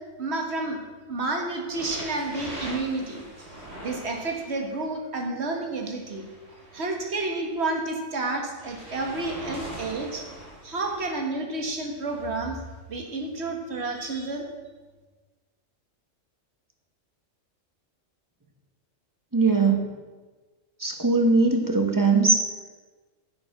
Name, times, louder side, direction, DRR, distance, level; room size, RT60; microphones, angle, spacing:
voice 1, 0.2-0.8 1.1-3.5 3.8-6.3 6.7-10.2 10.6-12.6 12.9-14.5, right 2 dB, 55° right, 3 dB, 1.8 m, -30 dB
sound 1, 1.7-4.8 5.7-7.6 8.6-11.2 11.9-12.2 13.0-13.1, right 1 dB, 30° right, 3.9 m, -41 dB
voice 2, 19.3-19.9 20.8-22.4, right 3 dB, 15° right, 3 dB, 1.0 m, -20 dB
9.6 x 7.9 x 5.9 m, 1.3 s
omnidirectional pair, 1.3 m